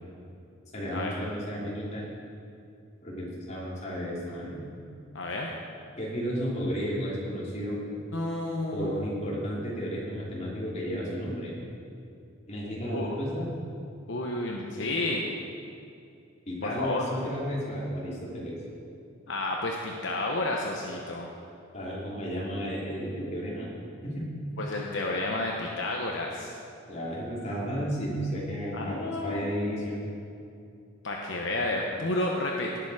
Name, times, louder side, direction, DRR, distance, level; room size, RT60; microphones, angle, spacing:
voice 1, 0.7-2.1 3.0-4.6 6.0-7.8 8.7-11.5 12.5-13.5 16.5-18.5 21.7-23.7 24.0-24.3 26.8-30.0, equal, 35° left, -6 dB, 3.2 m, -33 dB
voice 2, 5.1-5.5 8.1-9.1 12.9-13.2 14.1-15.2 16.6-17.0 19.3-21.3 24.6-26.5 28.7-29.5 31.0-32.8, left 2 dB, 70° left, 0 dB, 1.0 m, -31 dB
18.0 x 7.0 x 4.9 m, 2.6 s
head